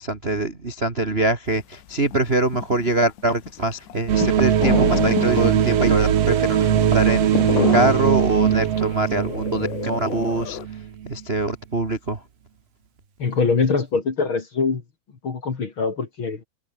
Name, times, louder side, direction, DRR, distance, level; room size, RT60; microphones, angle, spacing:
voice 1, 0.0-10.6 11.0-12.2, right 2 dB, 35° right, 1.0 m, -24 dB
sound 1, 1.6-1.7 1.9-10.7, left 11 dB, 85° left, 4.3 m, -29 dB
sound 2, 4.1-11.1, right 9 dB, 55° right, 1.8 m, -21 dB
voice 2, 13.2-14.8 15.2-16.4, left 4 dB, 35° left, 2.6 m, -23 dB
omnidirectional pair, 4.9 m